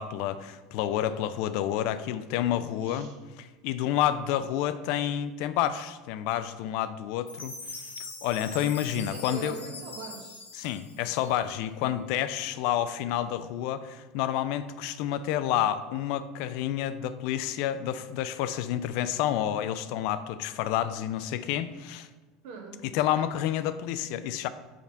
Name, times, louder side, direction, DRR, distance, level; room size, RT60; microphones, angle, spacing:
voice 1, 0.0-3.1 3.4-7.5 8.2-9.6 10.5-22.1 22.8-24.5, left 11 dB, 55° left, 12 dB, 0.3 m, -29 dB
voice 2, 2.8-3.2 9.1-10.4 22.4-22.8, right 4 dB, 60° right, 4 dB, 0.9 m, -41 dB
Chime, 7.3-11.6, left 2 dB, 85° left, 0.9 m, -42 dB
5.0 x 3.9 x 5.4 m, 1.3 s
figure-of-eight pair, 70°, 0 cm